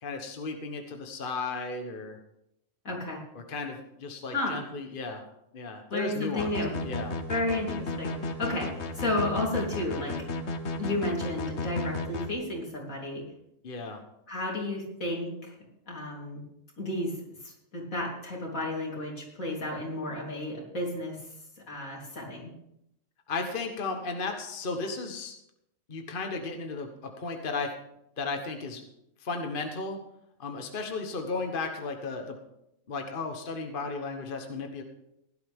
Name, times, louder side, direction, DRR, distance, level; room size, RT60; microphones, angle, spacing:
voice 1, 0.0-2.2 3.3-5.2 5.5-6.5 6.8-7.1 13.6-14.0 23.3-25.3 25.9-27.7 28.2-28.8 29.2-30.0 30.4-32.4 32.9-34.8, left 3 dB, 40° left, 4 dB, 1.3 m, -34 dB
voice 2, 2.8-3.2 4.3-4.6 5.9-6.7 7.3-10.3 10.8-13.2 14.3-15.5 15.9-16.4 16.8-17.1 17.4-21.2 21.7-22.5, left 1 dB, 85° left, -2 dB, 4.0 m, -32 dB
sound 1, 6.4-12.3, left 3 dB, 55° left, 1.3 m, -34 dB
16.5 x 11.5 x 3.6 m, 0.80 s
omnidirectional pair, 1.4 m